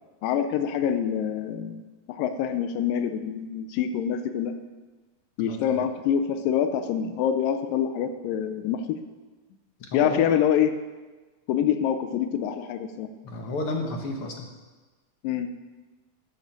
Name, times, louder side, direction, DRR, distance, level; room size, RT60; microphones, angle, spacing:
voice 1, 0.2-1.8 2.2-4.5 5.4-9.0 9.9-10.7 11.5-13.1 15.2-15.5, left 9 dB, 90° left, 9 dB, 2.4 m, -25 dB
voice 2, 5.5-5.8 9.8-10.4 13.2-14.5, left 2 dB, 50° left, 2 dB, 1.9 m, -32 dB
13.0 x 7.7 x 7.4 m, 1.3 s
omnidirectional pair, 3.8 m